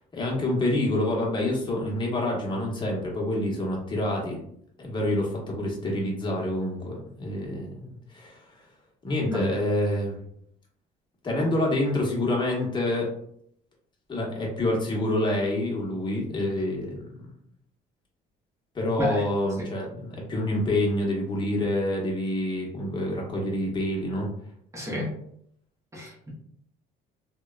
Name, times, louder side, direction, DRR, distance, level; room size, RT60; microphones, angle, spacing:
voice 1, 0.1-4.4 4.8-8.6 9.0-10.2 11.2-13.1 14.1-17.3 18.7-24.3, left 1 dB, 30° left, -2 dB, 0.9 m, -27 dB
voice 2, 24.7-25.1 25.9-26.3, left 1 dB, 15° right, -4 dB, 0.8 m, -31 dB
3.0 x 2.2 x 2.3 m, 0.69 s
cardioid pair, 110°, 17 cm